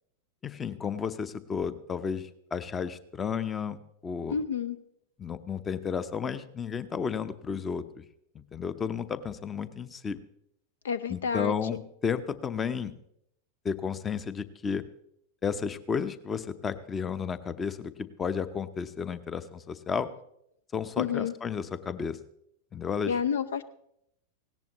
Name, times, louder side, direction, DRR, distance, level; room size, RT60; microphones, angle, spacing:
voice 1, 0.4-4.4 5.2-8.0 8.3-10.2 11.1-12.9 13.6-14.8 15.4-20.1 20.7-22.2 22.7-23.2, left 6 dB, 20° left, 15 dB, 0.8 m, -32 dB
voice 2, 4.3-4.8 10.8-11.8 21.0-21.3 23.1-23.6, left 7 dB, 65° left, 17 dB, 0.6 m, -30 dB
18.0 x 17.0 x 3.0 m, 0.74 s
figure-of-eight pair, 90°, 0 cm